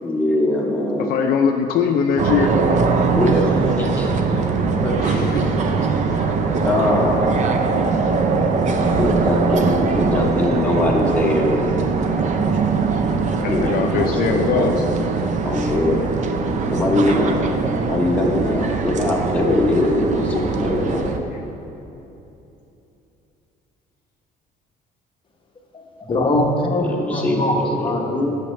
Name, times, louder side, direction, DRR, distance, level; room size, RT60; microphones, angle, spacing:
voice 1, 0.0-1.1 3.1-4.4 4.6-5.3 6.6-7.2 9.0-11.7 13.4-15.0 15.4-16.1 16.6-17.4 17.8-21.0 26.8-27.9, left 1 dB, 10° left, -3 dB, 1.1 m, -22 dB
voice 2, 1.1-2.5 5.0-5.5 6.1-6.2 13.4-14.7 17.1-17.2, left 7 dB, 60° left, 3 dB, 0.4 m, -21 dB
sound 1, 2.2-21.2, right 4 dB, 45° right, 0.5 m, -21 dB
voice 3, 25.7-28.3, left 1 dB, 30° left, 1 dB, 0.9 m, -22 dB
8.4 x 6.4 x 3.1 m, 2.9 s
cardioid pair, 110°, 17 cm